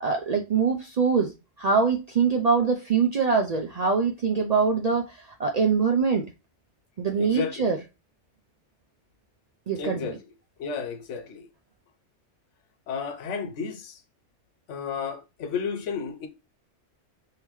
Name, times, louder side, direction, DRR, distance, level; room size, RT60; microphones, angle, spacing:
voice 1, 0.0-6.3 7.0-7.8 9.7-10.2, right 5 dB, 65° right, 0.4 m, -24 dB
voice 2, 7.2-7.7 9.7-10.2 10.6-11.5 12.9-14.0 14.7-16.3, left 6 dB, 90° left, 1.0 m, -32 dB
3.5 x 2.8 x 3.0 m
omnidirectional pair, 1.2 m